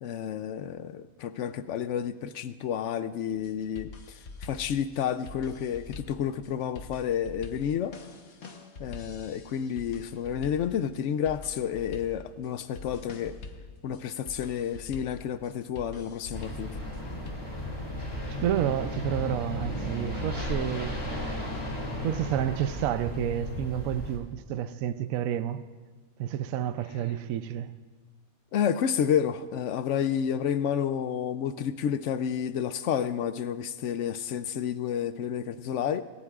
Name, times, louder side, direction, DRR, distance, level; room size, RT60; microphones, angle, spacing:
voice 1, 0.0-8.0 8.8-13.4 13.8-16.8 28.5-36.0, left 8 dB, 65° left, 0.7 m, -30 dB
sound 1, 3.3-17.3, left 4 dB, 50° left, 1.2 m, -45 dB
sound 2, 16.3-24.2, left 1 dB, 20° left, 2.3 m, -34 dB
voice 2, 18.3-21.0 22.0-25.7 26.2-27.7, right 11 dB, 75° right, 0.9 m, -30 dB
19.5 x 18.0 x 2.4 m
omnidirectional pair, 1.6 m